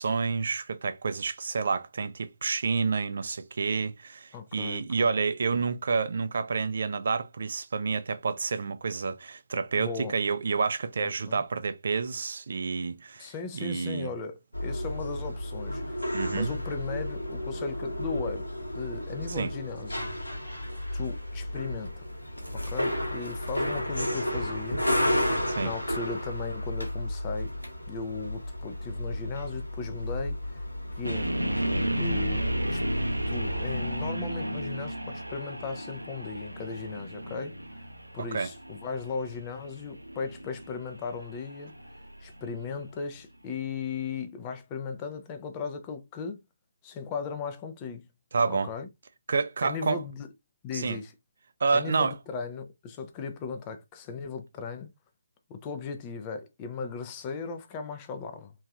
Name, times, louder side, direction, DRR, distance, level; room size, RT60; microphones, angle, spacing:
voice 1, 0.0-14.1 16.1-16.5 19.3-19.5 25.5-25.7 38.2-38.5 48.3-48.7 49.3-50.0 50.7-51.0 51.6-52.2, right 4 dB, 50° right, 0.4 m, -29 dB
voice 2, 4.3-5.1 9.8-10.2 11.0-11.4 13.2-18.5 18.7-20.1 20.9-22.0 22.5-24.8 25.1-27.5 27.9-30.6 31.0-31.3 32.0-37.6 38.1-41.7 42.2-46.4 46.8-48.1 48.5-48.9 49.6-50.3 50.6-51.1 51.7-54.9 55.5-58.5, left 5 dB, 20° left, 0.5 m, -37 dB
sound 1, 14.5-34.1, left 1 dB, 80° left, 1.2 m, -33 dB
sound 2, 31.0-43.0, right 1 dB, 85° right, 0.7 m, -33 dB
3.0 x 2.7 x 2.4 m
figure-of-eight pair, 145°, 0 cm